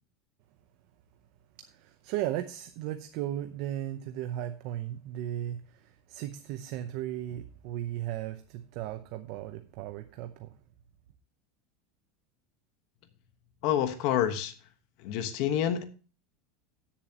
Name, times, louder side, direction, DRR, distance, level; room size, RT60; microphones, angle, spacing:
voice 1, 1.6-10.5, right 12 dB, 45° right, 0.7 m, -36 dB
voice 2, 13.6-14.5 15.0-15.8, left 10 dB, 45° left, 1.2 m, -28 dB
16.0 x 7.1 x 2.9 m
supercardioid pair, 180°, 0 cm